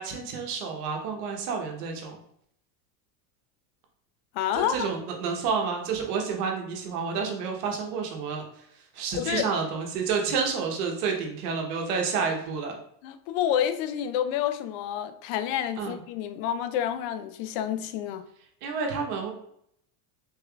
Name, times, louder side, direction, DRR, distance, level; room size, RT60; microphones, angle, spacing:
voice 1, 0.0-2.1 4.5-8.4 8.9-12.8 15.8-16.0 18.6-19.3, right 5 dB, 70° right, 1.1 m, -29 dB
voice 2, 4.3-4.9 9.1-9.5 13.0-18.2, left 10 dB, 55° left, 0.5 m, -29 dB
3.6 x 3.3 x 2.3 m
supercardioid pair, 105°, 47 cm